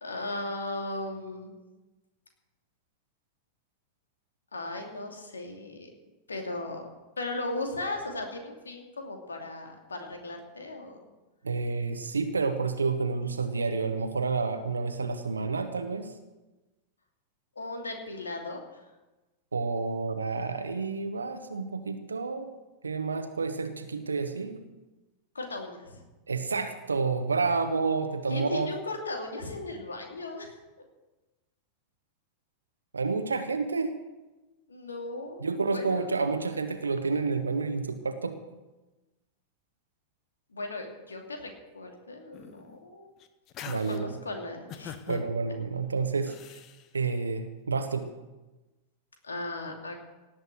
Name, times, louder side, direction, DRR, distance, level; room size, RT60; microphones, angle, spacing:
voice 1, 0.0-1.5 4.5-5.9 6.3-6.9 7.2-11.0 17.6-18.6 25.3-25.9 28.3-30.5 34.7-36.1 40.5-43.1 43.7-44.9 49.2-50.0, left 2 dB, 75° left, 3 dB, 2.6 m, -37 dB
voice 2, 11.4-16.1 19.5-22.5 22.8-24.6 26.3-28.7 32.9-34.0 35.4-38.4 43.7-44.1 45.1-46.3 46.9-48.1, right 4 dB, 75° right, 7 dB, 1.1 m, -29 dB
sound 1, 42.3-42.8 43.2-44.0 44.7-45.3 46.3-46.8, left 9 dB, 35° left, 1.1 m, -43 dB
18.0 x 8.0 x 7.9 m, 1.1 s
figure-of-eight pair, 90°, 0 cm